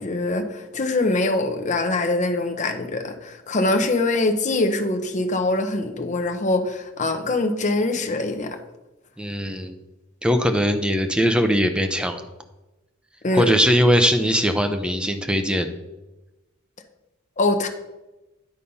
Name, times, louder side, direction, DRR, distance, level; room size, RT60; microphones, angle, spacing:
voice 1, 0.0-8.6 13.2-13.5 17.4-17.7, left 2 dB, 35° left, 6 dB, 0.8 m, -23 dB
voice 2, 9.2-9.7 10.2-12.2 13.3-15.7, equal, 5° right, 7 dB, 0.6 m, -20 dB
10.0 x 4.1 x 5.5 m, 1.0 s
head